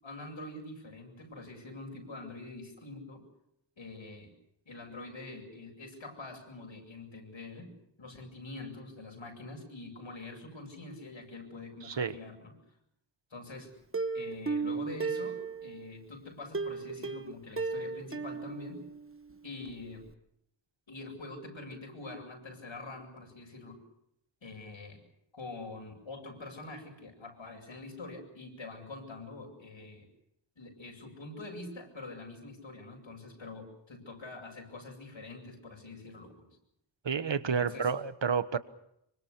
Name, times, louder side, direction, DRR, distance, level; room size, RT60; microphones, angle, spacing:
voice 1, 0.0-3.3 3.8-4.3 4.7-7.7 8.0-12.6 13.3-13.7 14.1-18.8 19.4-20.1 20.9-23.8 24.4-25.0 25.3-30.1 30.6-36.6 37.4-37.9, left 2 dB, 85° left, 2 dB, 8.0 m, -45 dB
Plucked string instrument, 13.9-15.9 16.5-19.3 19.7-19.8 20.1-20.2, right 4 dB, 30° right, 1.4 m, -35 dB
voice 2, 37.0-38.6, right 6 dB, 70° right, 13 dB, 1.4 m, -30 dB
26.0 x 24.5 x 6.8 m, 0.78 s
wide cardioid pair, 85°, 45 cm